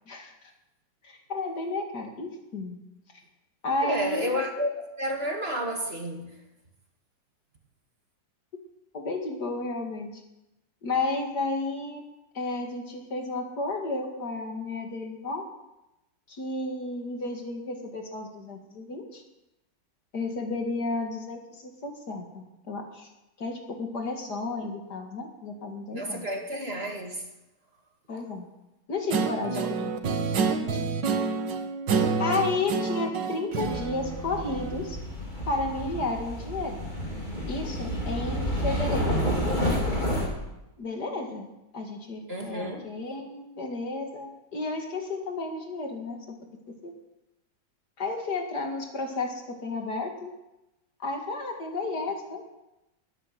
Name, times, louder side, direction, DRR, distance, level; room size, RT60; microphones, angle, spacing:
voice 1, 1.0-2.8 3.6-4.4 8.9-10.1 10.8-12.0 12.3-15.4 16.3-19.2 20.1-23.1 23.4-26.3 28.1-28.5 28.9-30.1 30.5-30.8 32.2-35.0 35.5-36.8 37.5-39.3 40.8-46.4 46.8-46.9 48.0-50.3 51.0-52.4, left 3 dB, 65° left, 3 dB, 2.7 m, -32 dB
voice 2, 3.8-4.7 5.0-6.4 25.9-27.2 29.5-29.7 42.3-42.9, equal, 35° right, 2 dB, 2.3 m, -31 dB
Guitar, 29.1-34.9, right 5 dB, 80° right, 2.0 m, -28 dB
sound 1, 33.6-40.3, equal, 25° left, 3.9 m, -30 dB
20.5 x 9.1 x 7.6 m, 0.94 s
omnidirectional pair, 1.9 m